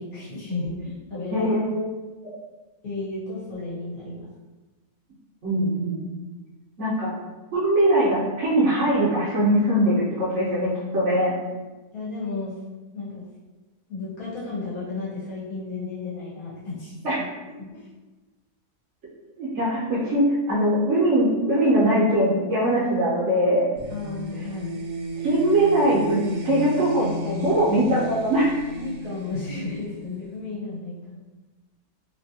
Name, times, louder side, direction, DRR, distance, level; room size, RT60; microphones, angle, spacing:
voice 1, 0.0-1.5 2.8-4.3 11.9-12.6 12.9-13.2 13.9-17.0 17.6-17.8 23.9-24.8 27.0-27.6 28.7-31.2, left 3 dB, 65° left, -9 dB, 1.7 m, -33 dB
voice 2, 1.3-1.9 2.2-2.4 5.4-6.1 6.8-7.1 7.5-11.3 17.0-17.2 19.4-23.7 24.3-24.5 25.2-26.2 26.4-27.1 27.4-28.5, right 1 dB, 55° right, -7 dB, 1.0 m, -21 dB
sound 1, 23.8-30.4, right 1 dB, 80° right, 0.5 m, -34 dB
3.3 x 2.6 x 2.7 m, 1.2 s
omnidirectional pair, 1.6 m